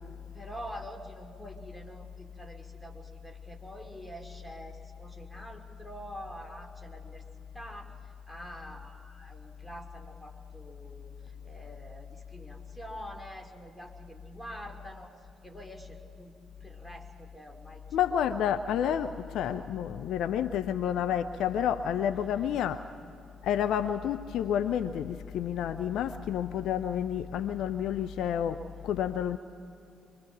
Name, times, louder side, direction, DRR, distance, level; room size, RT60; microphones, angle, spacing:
voice 1, 0.3-16.3 16.6-18.4 22.1-22.5 28.7-28.9, equal, 10° left, 2.7 m, -46 dB
voice 2, 17.9-22.9 23.4-29.4, left 9 dB, 60° left, 0.5 m, -30 dB
24.0 x 22.0 x 5.9 m
figure-of-eight pair, 45°, 0 cm